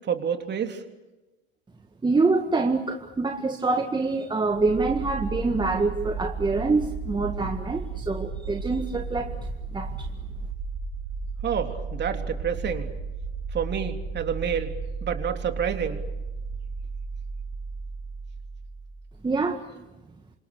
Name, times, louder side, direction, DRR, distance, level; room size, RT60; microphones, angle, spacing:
voice 1, 0.1-0.8 11.4-12.9 13.5-14.8 15.0-16.0, right 7 dB, 35° right, 6 dB, 3.5 m, -28 dB
voice 2, 2.0-10.1 19.2-19.8, right 3 dB, 15° right, 5 dB, 1.9 m, -26 dB
sound 1, 4.4-19.2, right 4 dB, 70° right, 5.2 m, -34 dB
29.0 x 26.5 x 6.9 m, 1.0 s
hypercardioid pair, 80°, 32 cm